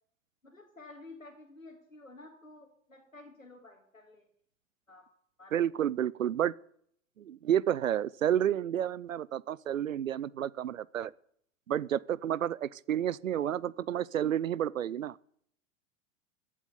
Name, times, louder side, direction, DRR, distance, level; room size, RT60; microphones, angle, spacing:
voice 1, 0.4-4.3 4.9-5.1 5.4-5.7, left 2 dB, 90° left, 2.0 m, -52 dB
voice 2, 5.5-6.5 7.2-11.1 11.7-15.2, right 10 dB, 80° right, 0.5 m, -30 dB
15.0 x 7.4 x 9.4 m
figure-of-eight pair, 85°, 39 cm